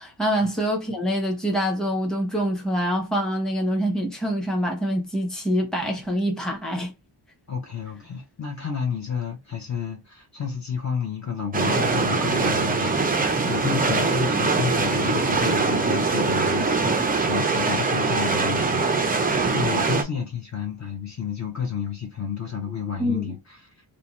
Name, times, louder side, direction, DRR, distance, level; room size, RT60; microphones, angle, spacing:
voice 1, 0.0-6.9 23.0-23.2, equal, ahead, 0.8 m, -25 dB
voice 2, 7.5-16.9 17.2-19.1 19.5-23.8, left 7 dB, 35° left, 0.6 m, -31 dB
sound 1, 11.5-20.0, right 4 dB, 20° right, 0.3 m, -22 dB
2.6 x 2.1 x 2.9 m
wide cardioid pair, 140°, 47 cm